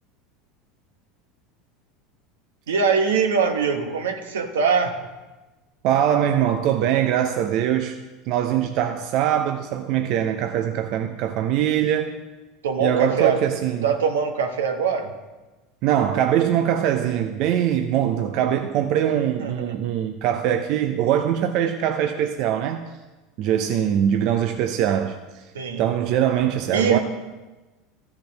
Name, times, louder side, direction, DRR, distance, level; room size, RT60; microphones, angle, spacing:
voice 1, 2.7-5.0 12.6-13.4 13.8-15.1 19.4-19.7 25.5-25.9 26.7-27.0, right 6 dB, 85° right, 4 dB, 1.1 m, -22 dB
voice 2, 5.8-8.0 8.3-12.2 12.8-13.9 15.8-22.9 23.4-25.2 25.8-27.0, right 10 dB, 60° right, 6 dB, 0.6 m, -22 dB
14.0 x 4.9 x 5.2 m, 1.2 s
hypercardioid pair, 90°, 0 cm